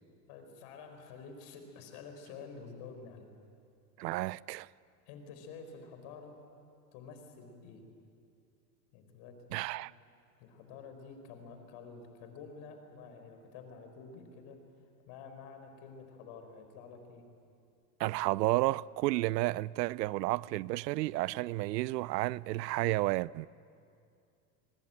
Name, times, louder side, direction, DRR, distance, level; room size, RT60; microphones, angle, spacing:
voice 1, 0.3-3.2 5.1-6.3 6.9-7.8 8.9-9.9 10.4-14.6 15.1-17.2, left 5 dB, 60° left, 4.9 m, -49 dB
voice 2, 4.0-4.7 9.5-9.9 18.0-23.5, right 18 dB, 80° right, 0.6 m, -31 dB
23.5 x 21.0 x 9.1 m
hypercardioid pair, 105°, 49 cm